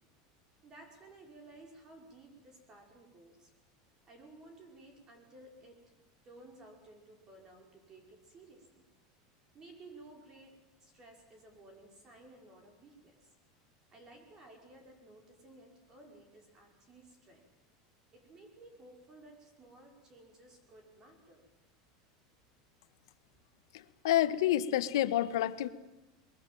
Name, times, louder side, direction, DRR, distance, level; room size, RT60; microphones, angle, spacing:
voice 1, 0.6-3.5 4.1-5.8 6.2-8.8 9.5-13.3 13.9-17.4 18.1-21.4, right 2 dB, 25° right, 2 dB, 5.3 m, -56 dB
voice 2, 23.7-25.7, left 12 dB, 85° left, 12 dB, 1.3 m, -29 dB
23.5 x 22.5 x 7.8 m, 1.0 s
supercardioid pair, 155°, 2 cm